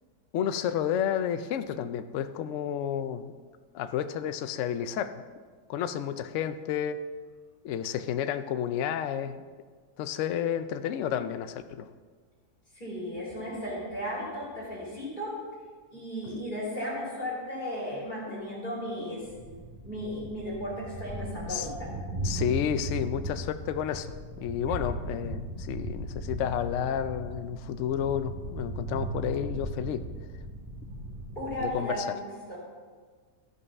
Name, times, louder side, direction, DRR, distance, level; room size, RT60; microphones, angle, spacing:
voice 1, 0.3-3.3 3.7-5.2 5.7-7.0 7.6-9.4 10.0-11.9 21.5-21.7 22.2-30.0 31.6-32.1, left 9 dB, 70° left, 10 dB, 0.7 m, -31 dB
voice 2, 12.7-15.4 15.9-19.3 19.8-21.9 24.7-24.8 31.3-32.6, equal, 30° left, -6 dB, 3.2 m, -35 dB
Thunder, 19.2-31.9, right 2 dB, 35° right, 2.5 m, -37 dB
13.0 x 5.5 x 5.4 m, 1.5 s
omnidirectional pair, 1.7 m